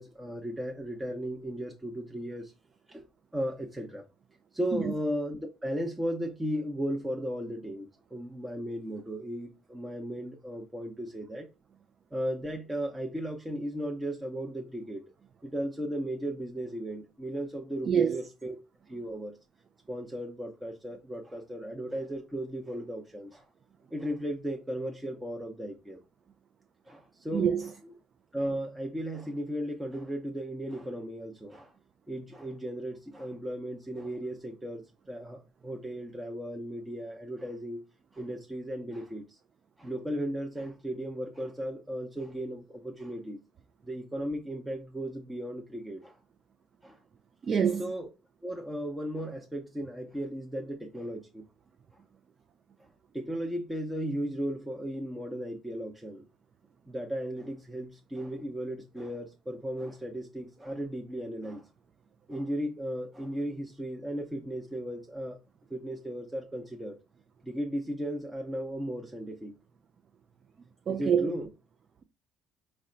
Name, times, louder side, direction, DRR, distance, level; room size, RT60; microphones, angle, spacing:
voice 1, 0.0-2.5 2.9-3.0 3.3-4.0 4.5-11.5 12.1-15.0 15.4-18.6 18.9-19.4 19.9-23.4 23.9-26.0 26.9-28.0 28.3-31.7 32.1-37.8 38.1-39.4 39.8-43.4 43.8-46.2 46.8-47.0 47.8-48.1 48.4-51.5 52.8-52.9 53.1-56.3 56.9-61.7 62.3-65.4 65.7-67.0 67.4-69.5 70.9-71.5, equal, 10° right, 0.7 m, -36 dB
voice 2, 17.9-18.2 27.3-27.6 47.4-47.9 70.9-71.3, right 7 dB, 45° right, 0.4 m, -26 dB
4.2 x 2.1 x 3.8 m
hypercardioid pair, 65°, 0 cm